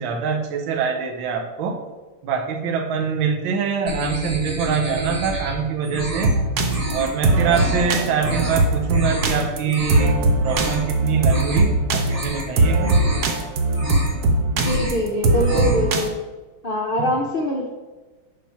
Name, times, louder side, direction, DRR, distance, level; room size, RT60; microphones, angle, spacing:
voice 1, 0.0-1.8 2.2-6.4 6.9-12.9, right 6 dB, 75° right, 4 dB, 1.6 m, -24 dB
sound 1, 3.9-5.5 5.8-6.3 6.7-7.1 7.4-7.8 8.2-8.6 8.9-9.3 9.6-10.1 10.4-10.8 11.2-11.7 12.0-12.5 12.8-13.3 13.7-14.2 14.5-15.0 15.3-15.9, equal, 20° right, 2.1 m, -29 dB
sound 2, 6.2-16.1, right 2 dB, 60° right, 1.2 m, -20 dB
voice 2, 14.5-16.2 16.6-17.7, equal, 85° left, -1 dB, 0.4 m, -23 dB
7.3 x 4.8 x 5.7 m, 1.3 s
omnidirectional pair, 2.3 m